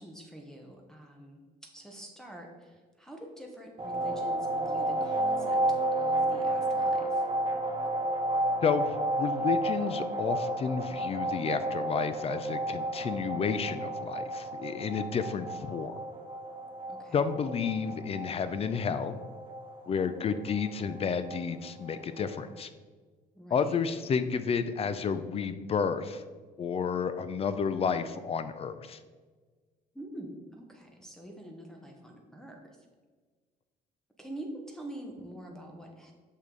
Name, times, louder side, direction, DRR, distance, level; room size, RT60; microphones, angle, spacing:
voice 1, 0.0-7.2 16.9-17.3 23.3-23.8 29.9-32.9 34.2-36.1, right 1 dB, 5° left, 0 dB, 0.9 m, -46 dB
sound 1, 3.8-22.4, right 1 dB, 30° right, 1.2 m, -32 dB
voice 2, 8.6-16.0 17.1-19.2 19.9-22.7 23.5-26.2 26.6-29.0, left 6 dB, 35° left, 12 dB, 0.4 m, -31 dB
6.4 x 5.4 x 3.8 m, 1.4 s
cardioid pair, 110°, 17 cm